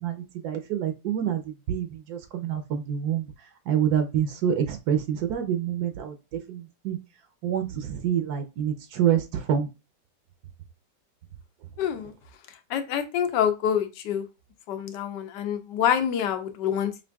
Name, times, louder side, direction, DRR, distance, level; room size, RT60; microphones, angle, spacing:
voice 1, 0.0-1.4 1.7-3.3 3.7-6.1 6.5-7.0 7.4-9.7, right 9 dB, 70° right, 7 dB, 1.1 m, -27 dB
voice 2, 11.8-12.1 12.7-14.2 14.7-16.9, left 9 dB, 90° left, 8 dB, 1.3 m, -26 dB
5.2 x 2.5 x 2.3 m, 0.27 s
omnidirectional pair, 1.8 m